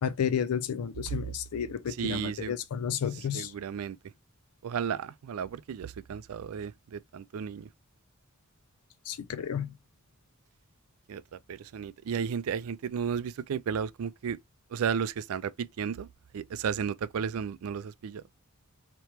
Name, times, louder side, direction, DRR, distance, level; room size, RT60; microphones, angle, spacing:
voice 1, 0.0-3.5 9.0-9.7, left 8 dB, 85° left, 0.4 m, -32 dB
voice 2, 1.9-2.6 3.3-4.0 4.6-7.7 11.1-14.4 14.7-16.1 16.3-18.2, right 7 dB, 75° right, 0.4 m, -33 dB
4.3 x 3.0 x 3.3 m
head